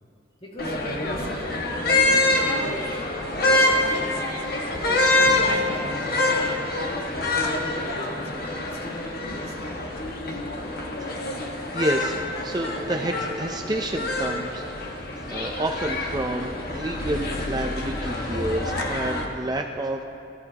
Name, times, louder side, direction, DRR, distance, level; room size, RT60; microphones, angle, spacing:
voice 1, 0.4-3.0 3.3-4.3 4.9-8.3 8.6-9.8, equal, 30° left, -2 dB, 2.1 m, -39 dB
sound 1, 0.6-19.2, left 2 dB, 55° left, 1.6 m, -26 dB
voice 2, 11.0-11.5 11.7-20.0, right 1 dB, 20° right, 2 dB, 0.6 m, -30 dB
23.0 x 14.0 x 3.0 m, 2.7 s
head